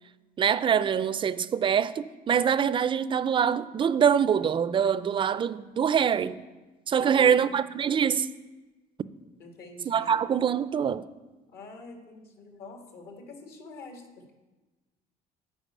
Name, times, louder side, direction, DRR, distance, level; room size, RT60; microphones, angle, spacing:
voice 1, 0.4-6.4 6.9-8.3 9.9-11.0, right 7 dB, 30° right, 0.4 m, -24 dB
voice 2, 7.0-7.6 9.4-10.2 11.5-14.3, left 3 dB, 70° left, 1.8 m, -45 dB
8.9 x 5.0 x 7.3 m
cardioid pair, 95°, 17 cm